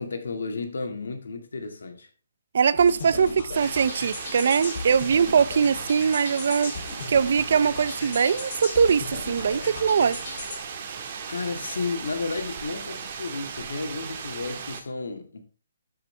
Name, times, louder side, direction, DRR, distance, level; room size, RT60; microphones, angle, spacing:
voice 1, 0.0-2.1 11.1-15.5, left 3 dB, 80° left, 2.0 m, -32 dB
voice 2, 2.5-6.7 7.1-10.2, right 6 dB, 60° right, 0.6 m, -22 dB
sound 1, 2.8-10.6, left 3 dB, 55° left, 3.4 m, -37 dB
sound 2, 3.5-14.8, right 6 dB, 40° right, 1.6 m, -37 dB
13.0 x 5.8 x 3.3 m
hypercardioid pair, 160°, 0 cm